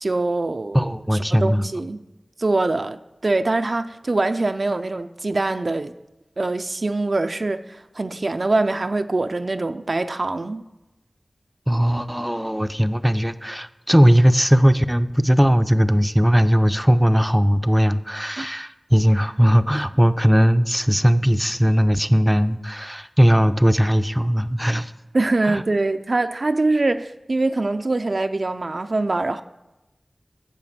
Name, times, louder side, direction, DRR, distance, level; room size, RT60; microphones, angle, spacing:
voice 1, 0.0-2.0 2.4-5.9 6.4-10.6 18.4-18.5 25.1-29.4, right 2 dB, 60° right, 0.5 m, -23 dB
voice 2, 0.7-1.6 11.7-24.9 25.4-25.6, equal, 5° right, 0.5 m, -18 dB
11.0 x 7.4 x 7.1 m
wide cardioid pair, 70°, 0 cm